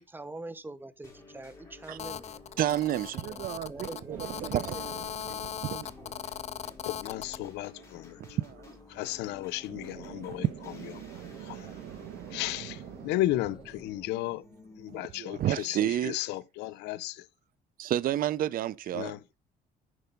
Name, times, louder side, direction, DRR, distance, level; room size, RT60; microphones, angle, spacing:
voice 1, 0.0-2.4 3.3-5.0, right 2 dB, 10° right, 1.0 m, -44 dB
sound 1, 1.0-16.2, left 3 dB, 15° left, 3.7 m, -52 dB
Telephone, 2.0-7.4, left 9 dB, 40° left, 0.5 m, -39 dB
voice 2, 2.6-4.8 5.4-6.2 8.4-8.8 14.9-16.2 17.8-19.1, right 12 dB, 55° right, 0.6 m, -31 dB
sound 2, 4.1-6.9 9.7-15.1, right 11 dB, 85° right, 1.3 m, -46 dB
voice 3, 6.9-8.4 8.9-10.5 10.8-10.9 11.2-11.7 12.3-14.4 14.8-17.3 18.9-19.2, left 16 dB, 90° left, 0.7 m, -34 dB
10.0 x 4.7 x 5.3 m
cardioid pair, 110°, 17 cm